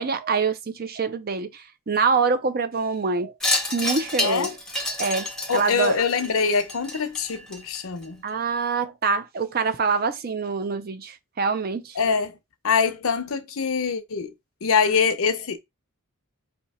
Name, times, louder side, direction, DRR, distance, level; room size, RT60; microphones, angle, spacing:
voice 1, 0.0-3.3 3.7-4.5 5.0-6.0 8.2-12.0, right 5 dB, 40° right, 0.5 m, -25 dB
Wind chime, 3.4-8.0, left 2 dB, ahead, 0.8 m, -29 dB
voice 2, 4.2-4.5 5.5-8.2 12.0-12.4 12.6-14.3 14.6-15.6, left 5 dB, 70° left, 0.7 m, -24 dB
4.3 x 2.8 x 4.2 m
head